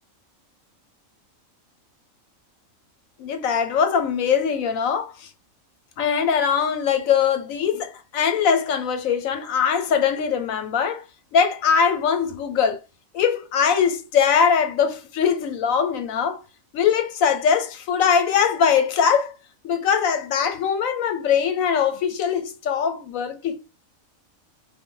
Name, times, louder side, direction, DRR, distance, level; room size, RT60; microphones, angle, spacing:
voice 1, 3.2-5.3 6.0-11.0 11.3-12.8 13.1-16.4 16.7-19.3 19.6-23.6, left 7 dB, 80° left, 1.1 m, -21 dB
4.0 x 2.1 x 3.8 m
omnidirectional pair, 1.4 m